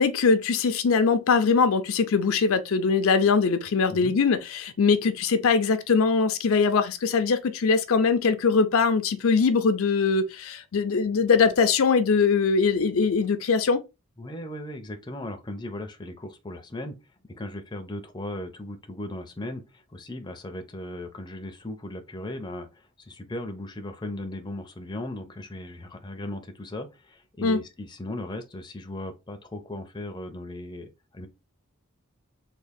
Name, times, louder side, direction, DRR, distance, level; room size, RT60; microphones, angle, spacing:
voice 1, 0.0-13.8 27.4-27.6, left 5 dB, 70° left, 0.5 m, -22 dB
voice 2, 14.2-17.0 17.3-31.3, left 1 dB, 20° left, 0.5 m, -37 dB
3.6 x 2.4 x 3.4 m
head